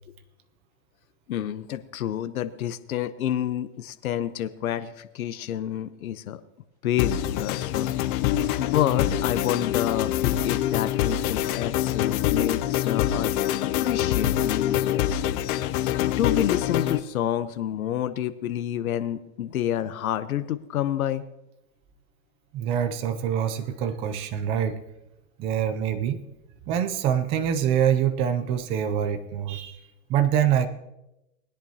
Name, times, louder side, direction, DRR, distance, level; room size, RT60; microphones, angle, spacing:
voice 1, 1.3-6.4 6.8-7.9 8.6-13.5 13.8-15.2 16.0-21.2, left 11 dB, 90° left, 12 dB, 0.9 m, -29 dB
sound 1, 7.0-17.0, left 12 dB, 40° left, 0.6 m, -25 dB
voice 2, 22.5-24.8 25.4-26.2 26.7-29.8 30.1-30.7, right 9 dB, 15° right, 10 dB, 0.3 m, -25 dB
20.0 x 10.5 x 2.8 m, 0.89 s
hypercardioid pair, 140°, 41 cm